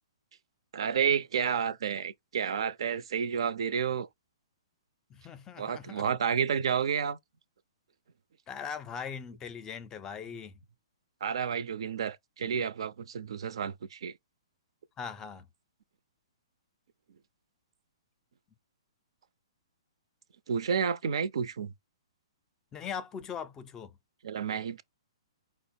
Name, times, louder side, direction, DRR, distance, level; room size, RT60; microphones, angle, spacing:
voice 1, 0.7-4.1 5.6-7.2 11.2-14.1 20.5-21.7 24.2-24.8, right 7 dB, 70° right, 0.5 m, -30 dB
voice 2, 5.1-6.1 8.5-10.6 15.0-15.5 22.7-24.0, left 7 dB, 20° left, 0.5 m, -40 dB
4.9 x 2.0 x 4.3 m
hypercardioid pair, 135°, 3 cm